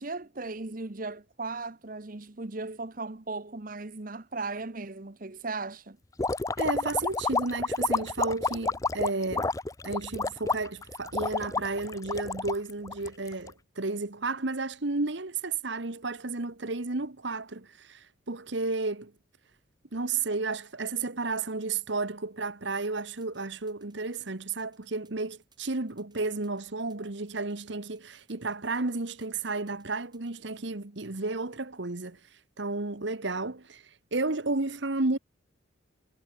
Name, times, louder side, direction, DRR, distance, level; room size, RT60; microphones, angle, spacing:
voice 1, 0.0-6.0, right 3 dB, 45° right, 1.1 m, -37 dB
sound 1, 6.2-13.5, left 3 dB, 15° left, 0.5 m, -30 dB
voice 2, 6.6-9.5 9.8-19.1 19.9-32.2 32.6-33.8 34.1-35.2, right 3 dB, 65° right, 1.4 m, -32 dB
sound 2, 23.0-30.3, right 7 dB, 20° right, 7.8 m, -67 dB
head